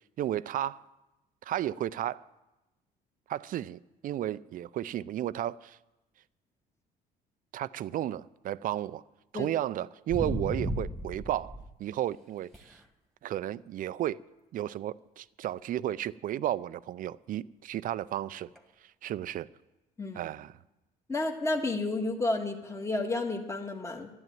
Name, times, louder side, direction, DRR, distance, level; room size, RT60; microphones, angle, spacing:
voice 1, 0.2-0.8 1.5-2.2 3.3-5.8 7.5-9.0 9.3-12.8 13.2-14.2 14.5-18.5 19.0-19.5 20.1-20.6, right 12 dB, 55° right, 0.5 m, -33 dB
sound 1, 10.1-11.7 12.5-12.7 18.5-18.6, equal, ahead, 1.8 m, -34 dB
voice 2, 21.1-24.1, left 2 dB, 15° left, 1.6 m, -31 dB
11.5 x 11.0 x 9.1 m
cardioid pair, 110°, 17 cm